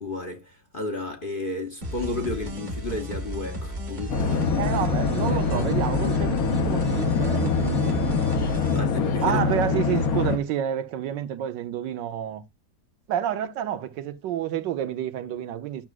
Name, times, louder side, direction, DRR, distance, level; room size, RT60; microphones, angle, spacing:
voice 1, 0.0-4.7 5.2-5.4 8.4-9.5, left 2 dB, 35° left, 0.9 m, -33 dB
sound 1, 1.8-8.8, equal, 30° right, 1.1 m, -33 dB
sound 2, 4.1-10.4, left 4 dB, 60° left, 1.2 m, -24 dB
voice 2, 4.6-8.1 9.2-12.4 13.1-15.8, right 10 dB, 85° right, 1.4 m, -29 dB
12.0 x 6.1 x 2.4 m
omnidirectional pair, 1.9 m